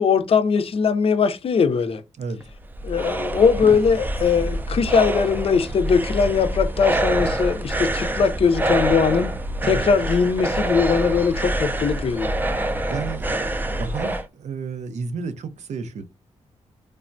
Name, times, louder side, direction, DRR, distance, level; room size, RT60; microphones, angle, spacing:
voice 1, 0.0-2.0 2.8-9.4 9.6-12.4, left 6 dB, 55° left, 0.4 m, -20 dB
voice 2, 2.2-2.5 9.6-9.9 12.6-16.0, right 5 dB, 80° right, 0.5 m, -32 dB
sound 1, 2.4-14.2, right 1 dB, 15° right, 0.4 m, -26 dB
3.2 x 2.1 x 2.5 m
cardioid pair, 85°, 12 cm